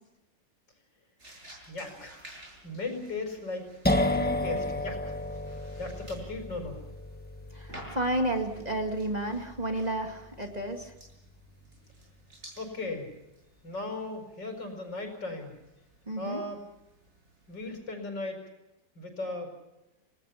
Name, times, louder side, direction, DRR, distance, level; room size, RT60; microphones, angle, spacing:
sound 1, 1.2-17.7, right 1 dB, 40° right, 7.4 m, -54 dB
voice 1, 1.7-2.2 2.6-3.6 4.1-5.1 5.8-6.8 12.6-13.1 13.6-15.6 16.2-16.6 17.5-18.4 19.0-19.5, left 2 dB, 85° left, 4 dB, 5.6 m, -37 dB
sound 2, 3.8-11.4, left 1 dB, 5° left, 1.2 m, -33 dB
voice 2, 7.5-10.9 16.1-16.4, right 1 dB, 25° right, 3 dB, 2.3 m, -31 dB
29.0 x 19.5 x 5.8 m, 0.92 s
omnidirectional pair, 1.9 m